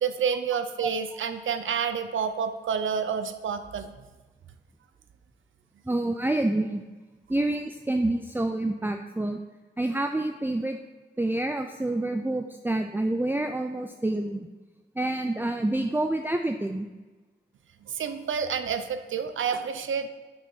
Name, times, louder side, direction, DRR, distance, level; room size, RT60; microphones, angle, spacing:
voice 1, 0.0-3.9 17.8-20.1, right 6 dB, 80° right, 9 dB, 0.7 m, -29 dB
voice 2, 5.9-6.8 7.3-9.4 9.8-10.8 11.2-14.5 15.0-16.9, right 1 dB, 10° right, 6 dB, 0.5 m, -27 dB
7.6 x 6.6 x 5.5 m, 1.2 s
cardioid pair, 55°, 20 cm